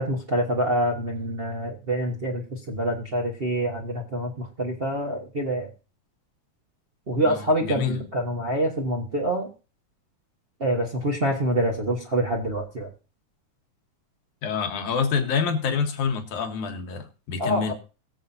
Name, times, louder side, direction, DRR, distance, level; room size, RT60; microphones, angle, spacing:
voice 1, 0.0-5.7 7.1-9.5 10.6-12.9 17.4-17.7, right 1 dB, 90° right, 0.5 m, -26 dB
voice 2, 7.2-8.0 14.4-17.7, left 6 dB, 85° left, 2.8 m, -27 dB
21.5 x 7.4 x 2.7 m
omnidirectional pair, 3.4 m